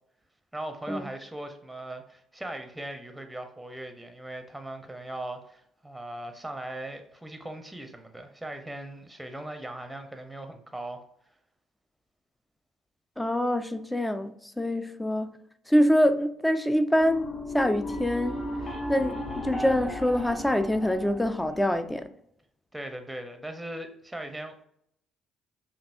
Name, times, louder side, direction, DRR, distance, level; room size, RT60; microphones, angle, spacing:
voice 1, 0.5-11.0 22.7-24.6, right 1 dB, 10° right, 0.8 m, -39 dB
voice 2, 13.2-15.3 15.7-18.4 18.9-22.1, equal, 10° left, 0.4 m, -25 dB
sound 1, 17.0-22.0, left 1 dB, 30° left, 0.9 m, -36 dB
5.2 x 2.4 x 2.6 m
hypercardioid pair, 55°, 0 cm